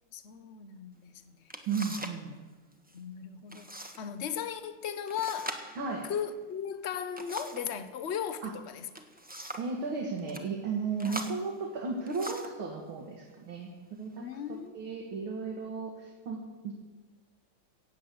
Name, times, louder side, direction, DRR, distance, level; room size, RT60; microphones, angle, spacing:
voice 1, 0.1-1.6 2.9-3.7 4.0-5.6 6.1-8.9 11.0-11.2 14.2-14.8, left 8 dB, 55° left, 0.7 m, -37 dB
sound 1, 1.0-1.1 1.5-2.2 2.5-3.0 3.5-4.0 4.3-4.4 5.1-7.7 8.7-9.8 10.2-10.5 11.0-12.6 13.4-13.6 14.1-14.6, right 1 dB, 10° right, 0.5 m, -42 dB
voice 2, 1.7-2.4 5.8-6.1 8.4-8.5 9.6-16.7, right 4 dB, 80° right, 2.5 m, -35 dB
17.0 x 8.3 x 7.8 m
omnidirectional pair, 2.3 m